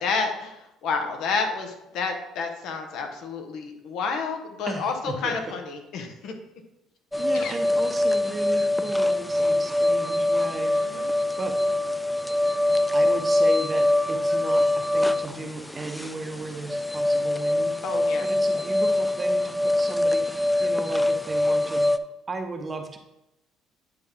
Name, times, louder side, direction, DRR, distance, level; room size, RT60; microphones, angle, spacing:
voice 1, 0.0-6.3 7.3-7.6 10.7-11.2 17.8-18.3, left 4 dB, 70° left, 4 dB, 1.1 m, -30 dB
voice 2, 4.7-5.6 7.1-10.8 11.4-11.6 12.9-21.9 22.3-23.0, right 2 dB, 25° right, 5 dB, 0.9 m, -35 dB
sound 1, 7.1-22.0, left 1 dB, 5° left, 0.3 m, -23 dB
9.5 x 4.1 x 3.6 m, 0.89 s
cardioid pair, 105°, 0 cm